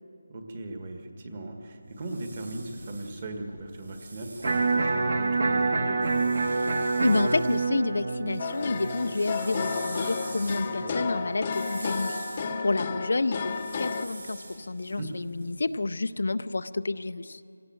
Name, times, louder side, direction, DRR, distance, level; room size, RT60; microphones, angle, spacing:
voice 1, 0.3-6.1 10.8-11.0 14.9-15.1, right 2 dB, 25° right, 4 dB, 1.6 m, -38 dB
sound 1, 1.8-5.3 6.0-7.7 8.0-15.9, right 2 dB, 60° right, 6.2 m, -46 dB
Electric guitar, 4.4-10.5, right 3 dB, 40° right, 1.4 m, -27 dB
voice 2, 7.0-12.1 12.6-17.4, left 3 dB, 55° left, 12 dB, 0.5 m, -29 dB
sound 2, 8.4-14.1, left 5 dB, 20° left, 0.8 m, -32 dB
25.0 x 17.5 x 7.7 m, 2.8 s
figure-of-eight pair, 175°, 0 cm